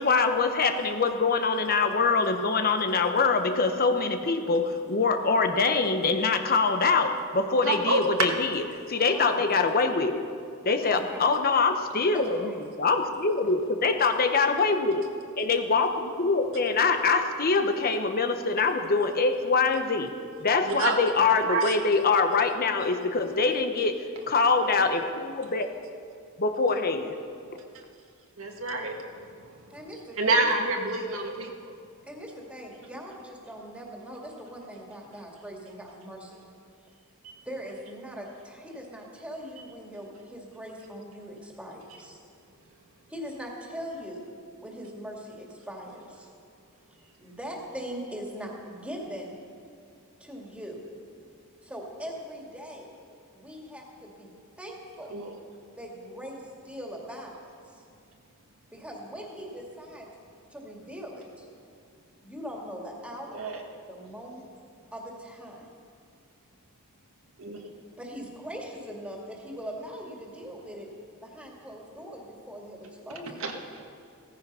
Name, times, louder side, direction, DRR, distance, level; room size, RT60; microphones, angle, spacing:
voice 1, 0.0-10.2 10.6-20.1 20.4-25.7 26.4-27.1, left 4 dB, 45° left, 7 dB, 0.9 m, -24 dB
voice 2, 7.6-8.0 9.1-9.2 20.6-21.8 28.4-29.0 30.2-31.7 55.1-55.3 63.3-63.6 67.4-67.6 73.4-73.5, right 3 dB, 70° right, 1 dB, 1.7 m, -28 dB
voice 3, 9.0-9.5 10.8-11.3 12.1-12.6 29.7-30.6 32.1-36.4 37.4-42.2 43.1-44.3 44.6-46.3 47.2-49.4 50.2-50.8 51.6-52.9 53.3-54.3 54.6-55.1 55.8-57.8 58.7-60.1 60.5-61.5 62.2-63.5 63.9-64.5 64.9-65.7 68.0-70.9 71.2-73.4, equal, 5° right, -1 dB, 2.5 m, -41 dB
16.5 x 14.0 x 5.6 m, 2.3 s
head